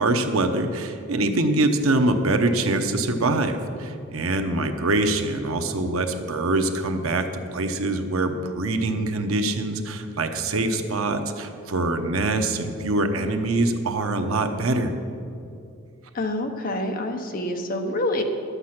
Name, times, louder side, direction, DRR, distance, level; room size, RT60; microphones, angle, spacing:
voice 1, 0.0-14.9, right 2 dB, 75° right, 6 dB, 0.9 m, -24 dB
voice 2, 16.1-18.2, left 1 dB, 45° left, 5 dB, 1.0 m, -27 dB
12.0 x 8.1 x 5.9 m, 2.6 s
head